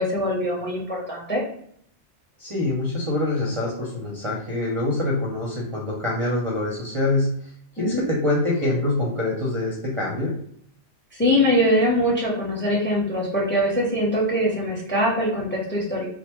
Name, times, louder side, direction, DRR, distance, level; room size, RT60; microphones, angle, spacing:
voice 1, 0.0-1.4 7.8-8.1 11.1-16.1, equal, 10° left, -3 dB, 0.6 m, -22 dB
voice 2, 2.4-10.4, left 2 dB, 35° right, -4 dB, 0.6 m, -25 dB
3.2 x 2.1 x 3.0 m, 0.66 s
omnidirectional pair, 1.2 m